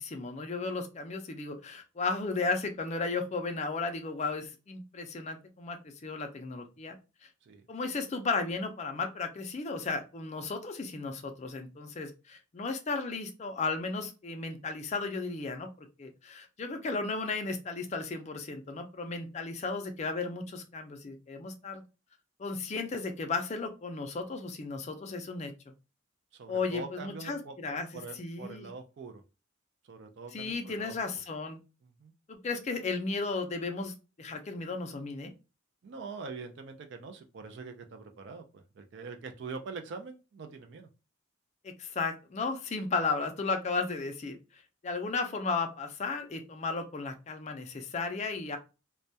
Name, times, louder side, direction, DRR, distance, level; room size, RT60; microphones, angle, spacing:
voice 1, 0.0-7.0 7.7-21.8 22.4-25.5 26.5-28.7 30.3-31.6 32.3-35.3 41.6-48.6, left 4 dB, 35° left, 6 dB, 0.4 m, -34 dB
voice 2, 26.3-29.2 29.8-31.0 31.8-32.1 35.8-40.9, right 4 dB, 60° right, 6 dB, 0.3 m, -44 dB
2.2 x 2.2 x 2.6 m, 0.30 s
head